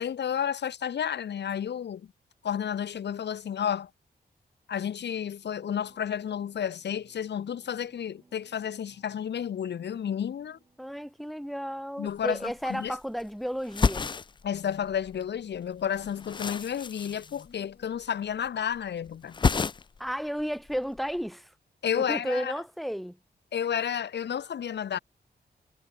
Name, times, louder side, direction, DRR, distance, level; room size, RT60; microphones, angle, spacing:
voice 1, 0.0-2.1 2.4-3.9 4.7-10.6 12.0-13.0 14.4-19.4 21.8-22.5 23.5-25.0, left 8 dB, 85° left, 1.1 m, -31 dB
sound 1, 5.6-11.3, right 3 dB, 25° right, 4.8 m, -62 dB
voice 2, 10.8-14.1 20.0-21.5 21.9-23.2, equal, ahead, 1.0 m, -33 dB
sound 2, 12.1-12.2 12.4-13.3 13.6-15.2 15.5-18.0 18.3-18.8 19.1-20.1 20.4-21.2, left 5 dB, 25° left, 0.4 m, -31 dB
sound 3, 14.3-17.9, left 6 dB, 60° left, 3.8 m, -61 dB
wide cardioid pair, 150°, 17 cm